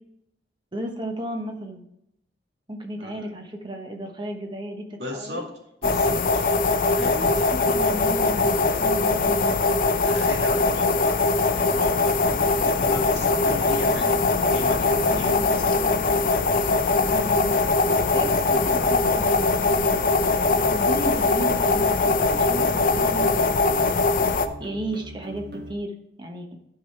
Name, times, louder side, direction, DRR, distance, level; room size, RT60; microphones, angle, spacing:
voice 1, 0.7-1.8 2.7-5.5 6.0-6.1 7.6-9.6 15.1-15.5 16.9-17.6 18.1-20.0 20.4-24.1 24.6-26.5, right 1 dB, 25° right, 3 dB, 1.0 m, -34 dB
voice 2, 3.0-3.3 5.0-5.4 5.8-6.4 6.8-7.5 10.0-11.1 11.4-12.1 12.5-15.4, left 1 dB, 80° right, 0 dB, 2.1 m, -36 dB
sound 1, 5.8-24.5, left 3 dB, 50° left, 0.6 m, -21 dB
sound 2, 12.2-25.7, right 1 dB, 60° right, 1.5 m, -41 dB
11.5 x 4.9 x 4.6 m, 0.81 s
head